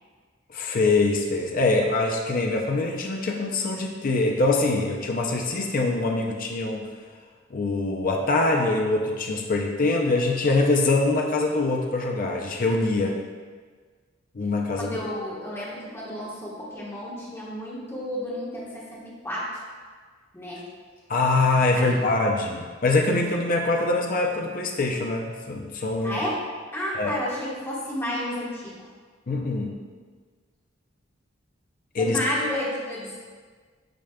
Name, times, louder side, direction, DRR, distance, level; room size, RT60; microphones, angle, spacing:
voice 1, 0.5-6.9 7.5-13.2 14.3-15.0 21.1-26.2 26.9-27.1 29.3-29.7 31.9-32.2, left 2 dB, 45° left, 1 dB, 0.6 m, -24 dB
voice 2, 14.8-19.6 20.3-20.7 21.7-22.0 26.0-26.4 26.7-28.8 32.0-33.2, left 1 dB, 15° left, -6 dB, 1.3 m, -31 dB
8.9 x 5.0 x 2.3 m, 1.5 s
head